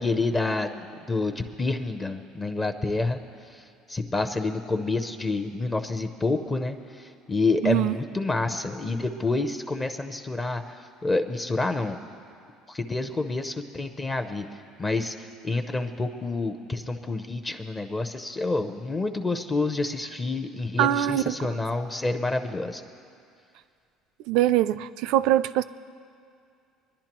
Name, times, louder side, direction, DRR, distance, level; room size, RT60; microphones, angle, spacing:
voice 1, 0.0-3.2 3.9-12.0 12.7-14.4 14.8-22.8, left 3 dB, 20° left, 6 dB, 0.6 m, -28 dB
voice 2, 7.6-8.0 20.8-21.5 24.3-25.6, right 13 dB, 75° right, 13 dB, 0.4 m, -23 dB
23.5 x 10.5 x 3.0 m, 2.4 s
cardioid pair, 120°, 0 cm